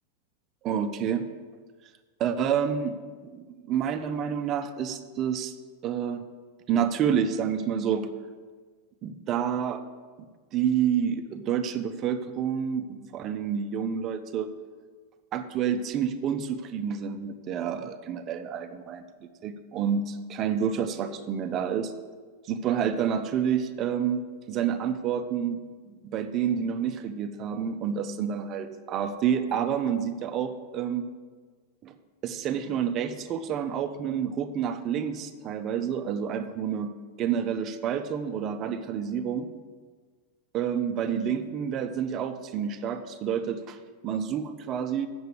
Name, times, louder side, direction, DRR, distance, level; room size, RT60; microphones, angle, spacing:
voice 1, 0.6-1.3 2.2-3.0 3.3-5.5 5.8-6.2 6.7-8.1 9.0-9.8 10.5-14.5 15.3-21.9 22.5-31.1 31.8-31.9 32.2-36.9 37.2-39.5 40.5-43.8 44.0-45.1, right 8 dB, 35° right, 8 dB, 0.7 m, -29 dB
8.0 x 7.0 x 6.9 m, 1.5 s
supercardioid pair, 130°, 0 cm